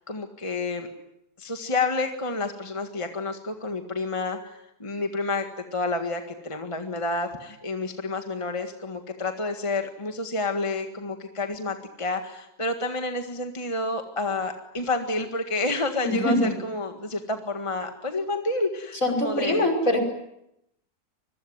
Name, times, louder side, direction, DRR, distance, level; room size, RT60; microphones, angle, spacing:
voice 1, 0.1-0.9 1.4-19.7, left 2 dB, 20° left, 5 dB, 1.8 m, -29 dB
voice 2, 16.0-16.5 19.0-20.0, left 1 dB, 60° left, 3 dB, 6.0 m, -23 dB
26.0 x 22.0 x 9.5 m, 0.82 s
omnidirectional pair, 1.6 m